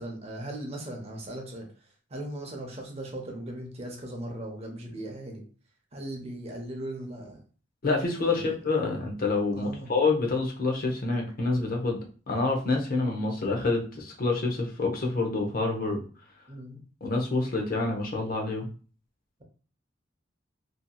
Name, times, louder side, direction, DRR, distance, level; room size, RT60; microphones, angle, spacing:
voice 1, 0.0-1.7 2.1-5.4 5.9-7.4 8.2-8.6 9.5-9.9 16.5-16.8, right 1 dB, 35° right, 2 dB, 0.6 m, -38 dB
voice 2, 7.8-12.0 12.3-16.0 17.0-18.7, left 3 dB, 50° left, 1 dB, 0.6 m, -27 dB
2.7 x 2.6 x 2.3 m, 0.38 s
head